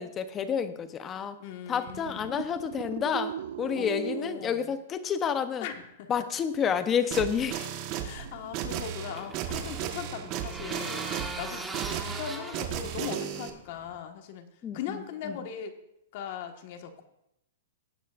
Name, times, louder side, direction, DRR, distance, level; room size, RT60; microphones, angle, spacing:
voice 1, 0.0-1.4 1.7-5.7 6.1-7.8 14.6-15.0 15.3-15.4, left 7 dB, 20° left, 10 dB, 0.9 m, -30 dB
voice 2, 1.4-2.5 3.7-4.7 5.6-6.1 8.0-11.6 12.0-14.5 14.7-15.7 16.1-17.0, left 8 dB, 50° left, 5 dB, 1.6 m, -39 dB
sound 1, 1.9-4.6 8.0-8.7, right 10 dB, 60° right, 0.4 m, -39 dB
sound 2, 7.1-13.5, right 9 dB, 40° right, 1.4 m, -35 dB
sound 3, 8.5-14.0, right 3 dB, 10° right, 1.3 m, -40 dB
18.0 x 9.4 x 2.6 m, 0.81 s
hypercardioid pair, 150°, 0 cm